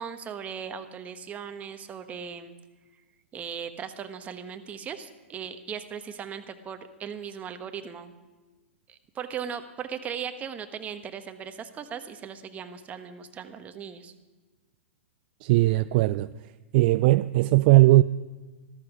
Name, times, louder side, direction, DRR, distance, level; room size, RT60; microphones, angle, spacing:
voice 1, 0.0-2.5 3.3-8.1 8.9-14.1, right 7 dB, 20° right, 1.1 m, -38 dB
voice 2, 15.4-16.3 16.7-18.0, right 18 dB, 45° right, 0.3 m, -19 dB
14.0 x 13.5 x 4.9 m
hypercardioid pair, 120°, 7 cm